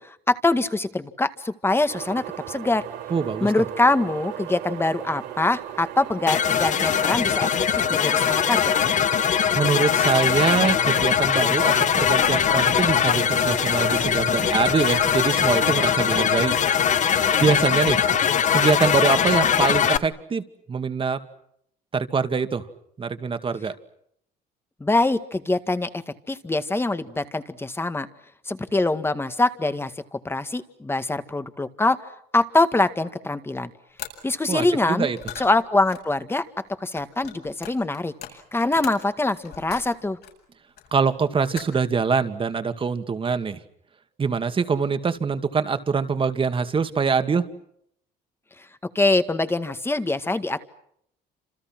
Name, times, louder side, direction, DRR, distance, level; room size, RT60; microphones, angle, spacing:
voice 1, 0.0-2.8 3.4-7.5 7.8-8.7 24.8-25.9 26.3-28.1 28.5-32.0 32.3-33.7 34.2-35.1 35.4-36.4 36.8-38.1 38.5-40.2 48.6-48.7 49.0-50.7, left 2 dB, 15° left, 10 dB, 1.9 m, -24 dB
sound 1, 1.9-19.6, right 11 dB, 85° right, 3.7 m, -36 dB
voice 2, 3.1-3.5 9.6-16.6 17.4-18.0 18.5-21.2 21.9-22.7 23.0-23.7 34.5-35.2 40.9-43.6 44.2-47.4, right 5 dB, 30° right, 9 dB, 2.3 m, -24 dB
sound 2, 6.3-20.0, left 9 dB, 45° left, 1.1 m, -21 dB
sound 3, 34.0-34.1 35.0-40.3 40.8-41.2 41.5-41.9, left 10 dB, 70° left, 8.0 m, -40 dB
29.5 x 27.5 x 6.1 m, 0.72 s
cardioid pair, 110°, 17 cm